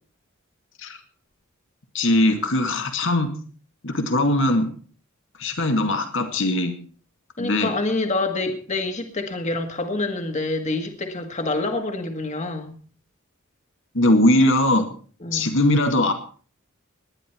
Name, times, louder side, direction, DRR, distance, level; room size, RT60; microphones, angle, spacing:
voice 1, 1.9-3.3 3.8-4.7 5.4-6.7 7.4-7.7 13.9-14.9 15.3-16.1, left 1 dB, 65° left, 2.2 m, -20 dB
voice 2, 7.4-12.8 15.2-15.5, left 2 dB, 35° left, 1.9 m, -27 dB
19.5 x 10.5 x 4.6 m
head